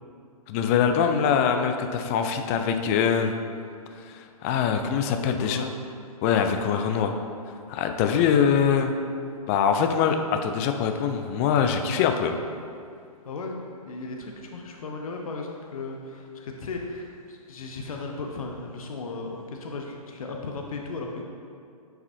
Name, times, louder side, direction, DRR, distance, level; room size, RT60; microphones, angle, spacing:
voice 1, 0.5-3.3 4.4-5.6 6.2-7.1 7.7-8.9 9.5-12.3, left 7 dB, 25° left, 6 dB, 0.3 m, -23 dB
voice 2, 5.1-5.7 8.1-8.3 13.2-13.6 13.9-21.2, left 3 dB, 65° left, 1 dB, 0.8 m, -36 dB
9.6 x 4.8 x 2.7 m, 2.3 s
figure-of-eight pair, 125°, 19 cm